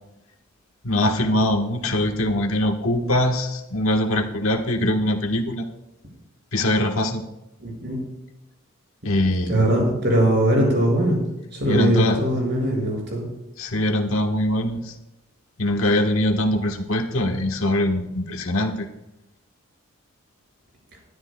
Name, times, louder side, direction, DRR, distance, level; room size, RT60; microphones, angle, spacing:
voice 1, 0.8-5.7 6.5-7.2 9.0-9.6 11.7-12.2 13.6-14.9 15.6-18.9, left 1 dB, 80° left, 3 dB, 1.3 m, -22 dB
voice 2, 7.6-8.0 9.5-11.2 11.5-13.2, right 1 dB, 50° right, -1 dB, 5.6 m, -20 dB
21.0 x 12.5 x 2.2 m, 0.94 s
head